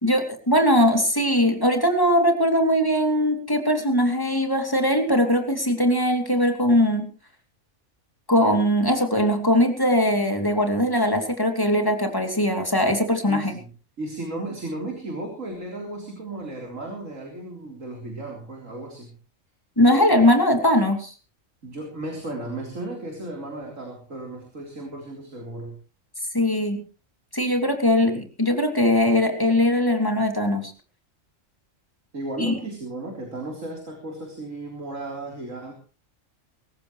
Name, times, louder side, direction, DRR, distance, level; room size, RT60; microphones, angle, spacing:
voice 1, 0.0-7.1 8.3-13.6 19.8-21.1 26.3-26.8 27.3-30.7 32.4-32.5, left 1 dB, 15° left, 4 dB, 2.9 m, -20 dB
voice 2, 13.3-13.7 14.0-19.1 21.6-25.8 32.1-35.7, right 2 dB, 75° right, 1 dB, 4.2 m, -34 dB
24.5 x 14.5 x 3.2 m, 0.35 s
omnidirectional pair, 1.4 m